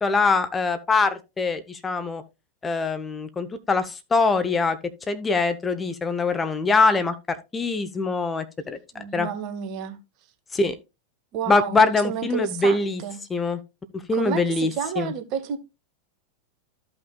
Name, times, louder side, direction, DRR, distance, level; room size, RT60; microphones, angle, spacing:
voice 1, 0.0-2.2 2.6-4.8 5.1-8.8 9.1-9.3 10.5-10.7 11.5-13.0 13.3-13.6 14.1-15.1, left 3 dB, 15° left, 0.7 m, -23 dB
voice 2, 8.9-10.0 11.3-13.2 14.1-15.6, right 8 dB, 40° right, 1.2 m, -31 dB
14.0 x 5.6 x 2.3 m
figure-of-eight pair, 90°, 0 cm